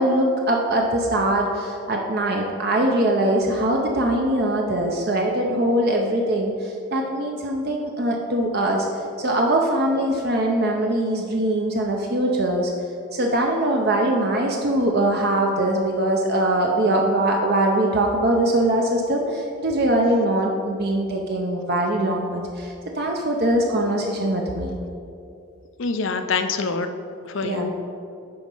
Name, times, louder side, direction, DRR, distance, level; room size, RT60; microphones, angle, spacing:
voice 1, 0.0-8.9 9.2-12.7 13.1-24.8 27.4-27.7, right 1 dB, 45° right, 0 dB, 0.6 m, -22 dB
voice 2, 25.8-26.9 27.3-27.7, left 4 dB, 60° left, 8 dB, 0.5 m, -25 dB
10.0 x 4.2 x 5.4 m, 2.6 s
head